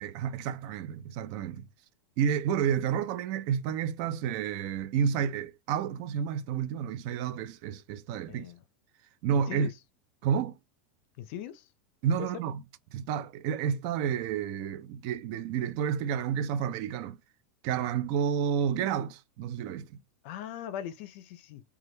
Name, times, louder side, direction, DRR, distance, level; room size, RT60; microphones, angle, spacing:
voice 1, 0.0-1.7 2.2-8.4 9.2-9.7 10.2-10.6 12.0-12.6 12.9-17.2 17.6-19.9, right 8 dB, 55° right, 0.4 m, -30 dB
voice 2, 8.3-8.6 9.3-9.7 11.2-11.7 12.2-12.3 20.2-21.6, left 10 dB, 60° left, 0.4 m, -40 dB
2.2 x 2.1 x 3.0 m
hypercardioid pair, 115°, 7 cm